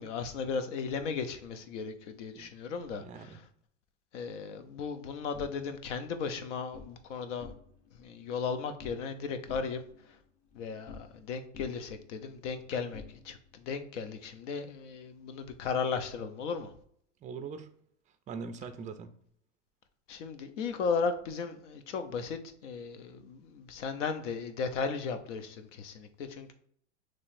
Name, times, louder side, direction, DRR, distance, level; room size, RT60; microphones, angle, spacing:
voice 1, 0.0-3.4 4.1-7.5 8.0-9.8 10.5-16.7 20.1-26.5, left 5 dB, 65° left, 0.8 m, -36 dB
voice 2, 3.0-3.4 17.2-17.7 18.3-19.1, right 5 dB, 20° right, 0.4 m, -41 dB
sound 1, 5.3-6.9 7.3-8.0 8.2-9.2 9.5-11.3 11.5-13.6, left 4 dB, 20° left, 0.9 m, -51 dB
5.5 x 3.2 x 2.5 m
hypercardioid pair, 105°, 38 cm